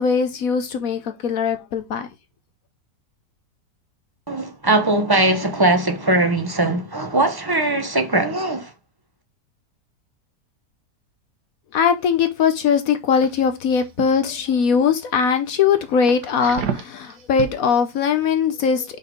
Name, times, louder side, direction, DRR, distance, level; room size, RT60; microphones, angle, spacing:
voice 1, 0.0-2.1 11.7-19.0, left 6 dB, 65° left, 1.1 m, -20 dB
voice 2, 4.3-8.7, right 2 dB, 20° right, 0.6 m, -20 dB
sound 1, 13.2-14.0 14.5-14.8 15.2-15.3 15.7-17.5 17.9-18.1, right 8 dB, 85° right, 1.5 m, -31 dB
5.5 x 3.9 x 5.1 m
omnidirectional pair, 1.7 m